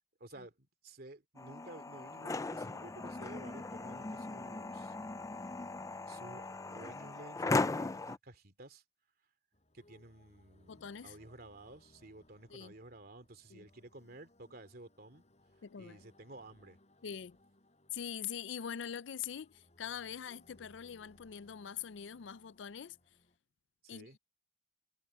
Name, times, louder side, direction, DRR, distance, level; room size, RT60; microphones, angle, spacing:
voice 1, 0.2-4.9 6.1-8.8 9.7-15.2 15.8-16.8 23.8-24.2, right 2 dB, 55° right, 2.8 m, -53 dB
sound 1, 1.4-8.2, left 3 dB, 15° left, 0.4 m, -38 dB
sound 2, 9.5-23.4, left 1 dB, 40° left, 5.7 m, -67 dB
voice 2, 10.7-11.2 12.5-12.7 13.5-13.7 15.6-16.0 17.0-17.4 17.9-23.0 23.9-24.2, left 8 dB, 85° left, 0.5 m, -43 dB
head